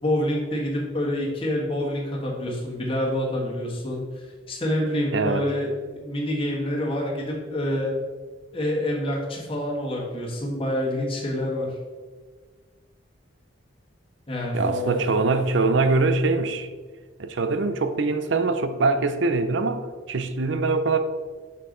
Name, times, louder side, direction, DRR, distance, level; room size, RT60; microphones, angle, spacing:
voice 1, 0.0-7.9 8.5-11.8 14.3-15.1, left 1 dB, 25° left, 1.4 m, -27 dB
voice 2, 5.1-5.4 14.5-16.7 17.2-21.0, right 3 dB, 65° right, 0.5 m, -23 dB
6.6 x 5.6 x 3.8 m
head